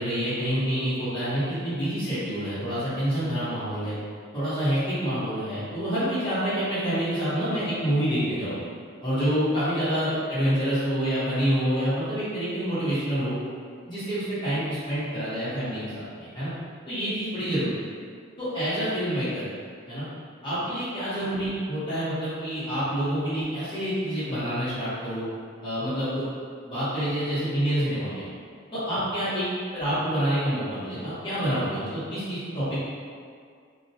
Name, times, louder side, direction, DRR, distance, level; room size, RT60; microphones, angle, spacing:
voice 1, 0.0-3.9 4.3-8.6 9.0-13.3 13.8-16.5 16.9-17.7 18.4-19.4 19.9-20.0 20.4-25.3 25.6-26.2 26.6-28.2 28.7-29.4 29.7-32.8, equal, 25° left, -13 dB, 1.0 m, -27 dB
2.4 x 2.1 x 2.7 m, 2.1 s
head